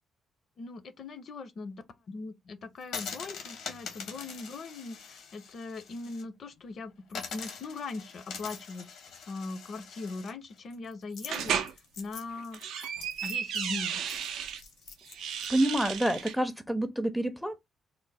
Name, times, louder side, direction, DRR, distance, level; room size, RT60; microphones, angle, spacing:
voice 1, 0.6-9.0 9.3-12.6 13.2-14.0, left 3 dB, 55° left, 0.5 m, -40 dB
sound 1, 2.8-6.2 6.6-6.7 7.1-15.5, left 6 dB, 80° left, 0.8 m, -44 dB
sound 2, 11.3-11.7 12.4-14.6 15.1-16.4, right 8 dB, 85° right, 0.4 m, -33 dB
voice 2, 15.5-17.6, right 1 dB, ahead, 0.4 m, -28 dB
3.3 x 2.0 x 3.2 m
cardioid pair, 90°, 0 cm